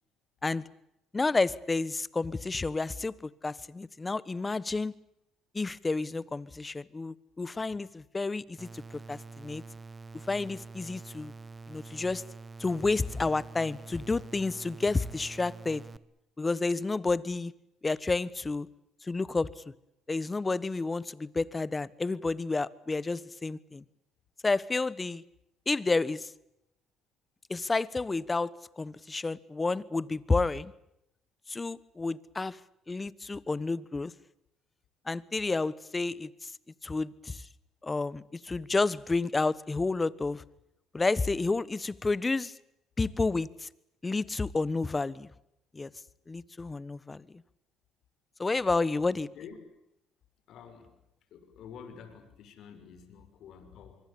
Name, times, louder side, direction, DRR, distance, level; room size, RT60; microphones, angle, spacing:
voice 1, 1.1-4.9 5.5-8.8 9.1-9.6 10.3-11.3 11.7-12.3 12.6-15.8 16.4-17.5 17.8-18.7 19.0-19.5 20.1-23.8 24.4-25.2 25.7-26.3 27.5-30.7 31.5-32.6 32.9-34.1 35.1-36.5 36.8-37.5 37.8-40.4 40.9-42.5 43.0-43.7 44.0-45.3 45.7-45.9 46.3-47.4 48.4-49.3, left 3 dB, 20° left, 20 dB, 1.2 m, -30 dB
sound 1, 8.6-16.0, right 4 dB, 25° right, 1.2 m, -46 dB
voice 2, 50.5-50.9 51.3-54.0, left 7 dB, 65° left, 8 dB, 6.1 m, -48 dB
25.0 x 24.0 x 8.6 m, 0.81 s
supercardioid pair, 80°, 0 cm